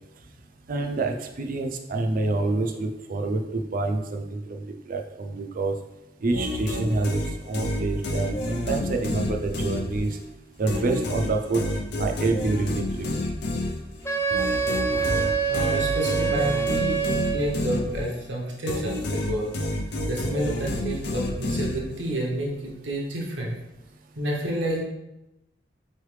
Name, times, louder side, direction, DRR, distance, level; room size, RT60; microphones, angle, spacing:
voice 1, 0.7-5.7 6.2-10.2 10.6-11.6 12.0-13.1, right 3 dB, 50° right, 4 dB, 0.4 m, -27 dB
sound 1, 6.3-10.3 10.7-18.3 18.7-22.1, left 1 dB, 65° left, 0.6 m, -29 dB
Wind instrument woodwind instrument, 14.1-17.6, right 6 dB, 15° left, 0.4 m, -26 dB
voice 2, 14.9-19.5 20.1-23.5 24.2-24.8, right 1 dB, 85° right, -2 dB, 0.9 m, -30 dB
4.4 x 3.2 x 3.2 m, 0.93 s
head